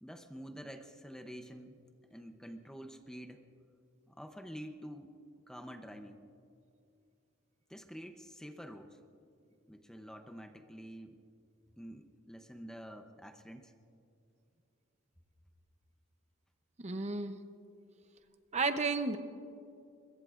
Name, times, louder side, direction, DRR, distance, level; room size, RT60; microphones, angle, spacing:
voice 1, 0.0-1.8 2.1-3.5 4.1-5.1 5.5-6.2 7.7-9.0 9.7-11.2 11.8-13.7, equal, 5° left, 6 dB, 0.7 m, -48 dB
voice 2, 16.8-17.4 18.5-19.2, right 4 dB, 35° right, 9 dB, 0.7 m, -32 dB
23.5 x 22.0 x 2.5 m, 2.6 s
head